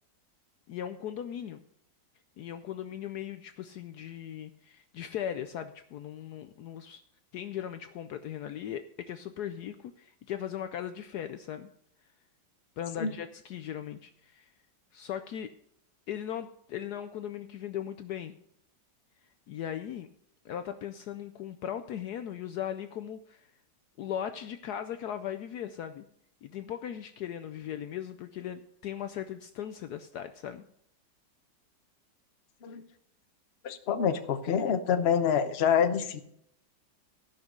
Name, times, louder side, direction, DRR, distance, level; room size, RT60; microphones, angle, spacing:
voice 1, 0.7-1.6 2.4-7.0 7.3-11.7 12.8-14.5 14.9-15.5 16.1-18.3 19.5-20.1 20.4-23.5 24.0-26.1 26.4-30.6, left 10 dB, 70° left, 9 dB, 1.0 m, -38 dB
voice 2, 33.6-36.2, left 7 dB, 45° left, 8 dB, 0.9 m, -26 dB
14.0 x 5.9 x 6.4 m, 0.71 s
omnidirectional pair, 2.0 m